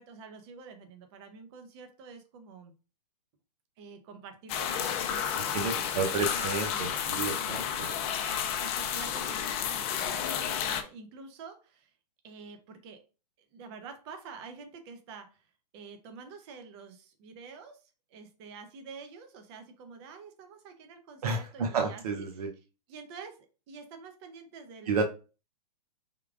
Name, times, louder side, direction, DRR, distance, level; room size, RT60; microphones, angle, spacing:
voice 1, 0.0-2.7 3.8-7.0 7.8-8.0 8.3-11.9 12.2-13.0 13.5-15.5 15.7-17.8 18.1-22.5 22.9-23.4 23.7-25.0, right 5 dB, 40° right, 7 dB, 1.0 m, -48 dB
sound 1, 4.5-10.8, left 8 dB, 30° left, 0.5 m, -31 dB
voice 2, 5.5-7.9 21.2-22.5 24.9-25.0, right 4 dB, 65° right, 4 dB, 0.8 m, -31 dB
4.5 x 3.7 x 2.4 m, 0.33 s
hypercardioid pair, 130°, 21 cm